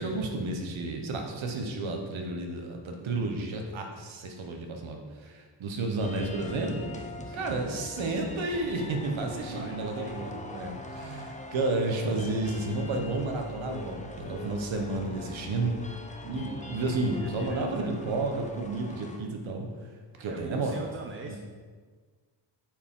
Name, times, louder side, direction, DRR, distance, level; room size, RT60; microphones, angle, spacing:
voice 1, 0.0-6.9 7.2-15.8 16.2-19.7 20.2-20.8 21.3-21.4, right 2 dB, 90° right, 3 dB, 1.2 m, -31 dB
sound 1, 6.0-19.2, left 2 dB, 15° left, 0.7 m, -42 dB
voice 2, 6.9-7.8 9.3-10.2 17.2-17.9 20.3-21.4, right 3 dB, 30° right, 3 dB, 0.6 m, -44 dB
8.6 x 4.7 x 3.8 m, 1.5 s
cardioid pair, 75°, 45 cm